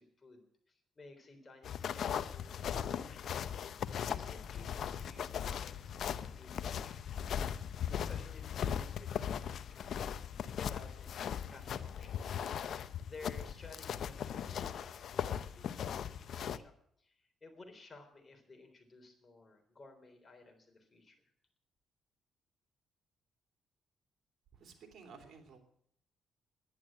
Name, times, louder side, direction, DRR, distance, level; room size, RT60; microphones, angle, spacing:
voice 1, 0.0-2.5 2.8-3.4 3.7-7.3 7.6-10.2 10.5-21.2, left 3 dB, 30° left, 5 dB, 3.5 m, -56 dB
sound 1, 1.6-16.6, left 8 dB, 65° left, 0.7 m, -39 dB
voice 2, 24.5-25.6, right 5 dB, 60° right, 4 dB, 3.0 m, -54 dB
10.5 x 10.5 x 8.8 m, 0.67 s
cardioid pair, 90°, 0 cm